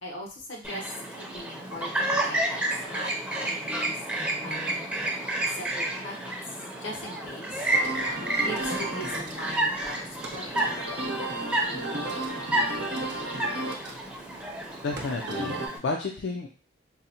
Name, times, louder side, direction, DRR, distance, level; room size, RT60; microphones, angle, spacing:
voice 1, 0.0-4.9 5.5-7.7 8.3-10.6, left 1 dB, 85° left, -1 dB, 0.9 m, -40 dB
Chirp tweet, 0.6-15.8, right 1 dB, 5° right, 0.5 m, -31 dB
sound 1, 7.7-15.7, right 1 dB, 60° right, 0.7 m, -34 dB
voice 2, 14.8-16.5, left 3 dB, 65° left, 0 dB, 0.4 m, -31 dB
3.8 x 2.1 x 2.7 m, 0.38 s
head